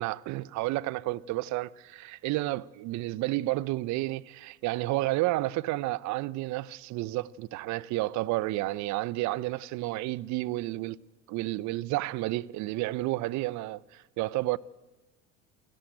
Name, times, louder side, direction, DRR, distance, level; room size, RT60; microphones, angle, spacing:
voice 1, 0.0-11.0 11.3-14.6, right 18 dB, 45° right, 0.9 m, -31 dB
28.0 x 17.0 x 9.2 m
hypercardioid pair, 80°, 38 cm